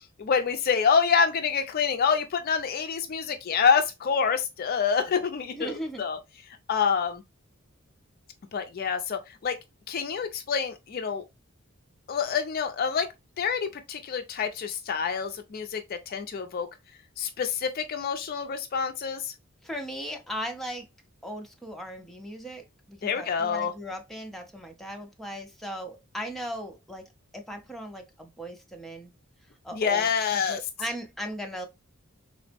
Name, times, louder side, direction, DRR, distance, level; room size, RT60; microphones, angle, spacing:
voice 1, 0.2-6.2 6.7-7.2 8.5-9.6 9.9-11.2 12.1-13.1 13.4-16.7 17.2-19.3 23.0-23.7 29.7-30.6, left 6 dB, 45° left, 0.4 m, -27 dB
voice 2, 5.5-6.0 19.6-20.9 21.2-27.1 27.3-29.1 29.6-30.1 30.3-31.7, equal, ahead, 0.6 m, -37 dB
3.8 x 2.0 x 3.3 m
head